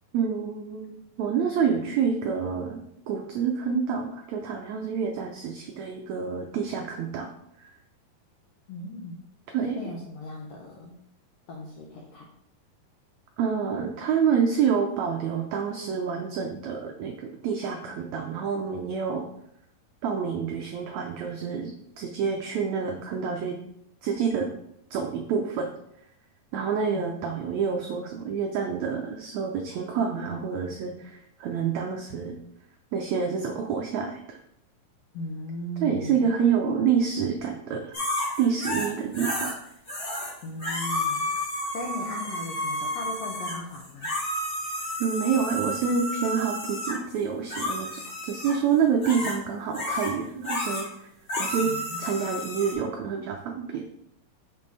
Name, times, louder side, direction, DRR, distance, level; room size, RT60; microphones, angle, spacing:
voice 1, 0.1-2.8 3.1-7.3 7.6-7.7 9.5-9.8 13.4-19.2 20.0-23.5 24.0-24.5 24.9-25.7 26.5-32.3 32.9-34.4 35.8-38.0 38.4-39.5 45.0-51.1 51.3-51.7 52.0-53.8, right 6 dB, 90° right, 2 dB, 1.6 m, -27 dB
voice 2, 8.7-9.2 9.6-10.9 11.5-12.3 26.9-27.2 35.1-36.3 40.4-41.4 41.7-44.1 49.2-49.3 51.6-52.0, left 2 dB, 75° left, -1 dB, 1.5 m, -37 dB
sound 1, 37.9-39.5 39.9-40.3 40.6-47.0 47.5-48.6 49.0-49.4 49.7-50.1 50.4-50.9 51.3-52.7, left 1 dB, 25° left, 2.6 m, -31 dB
6.2 x 5.4 x 4.1 m, 0.76 s
omnidirectional pair, 4.0 m